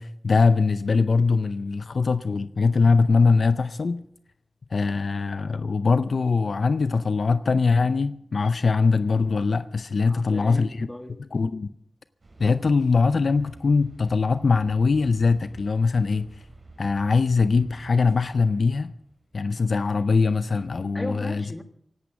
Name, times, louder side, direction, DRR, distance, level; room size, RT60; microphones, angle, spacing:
voice 1, 0.0-4.0 4.7-10.9 11.2-11.7 12.4-16.3 16.8-18.9 19.3-21.4, left 4 dB, 75° left, 0.5 m, -22 dB
voice 2, 10.0-11.2 20.9-21.6, left 1 dB, 20° left, 1.6 m, -35 dB
sound 1, 12.2-19.4, right 2 dB, 65° right, 4.8 m, -50 dB
16.5 x 11.0 x 6.0 m
wide cardioid pair, 55°, 0 cm